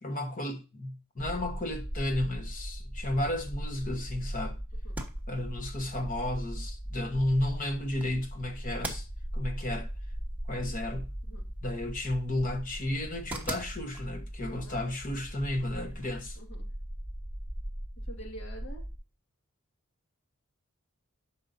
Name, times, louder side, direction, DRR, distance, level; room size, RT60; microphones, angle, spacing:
voice 1, 0.0-4.6 5.3-9.1 9.3-9.9 10.5-11.1 11.6-16.4, left 1 dB, 40° left, 1.3 m, -33 dB
sound 1, 1.2-18.9, equal, 20° left, 1.6 m, -39 dB
sound 2, 4.8-16.4, right 2 dB, 5° right, 1.2 m, -47 dB
voice 2, 16.4-16.7 18.0-18.9, right 1 dB, 60° left, 2.0 m, -47 dB
12.0 x 5.6 x 2.7 m
head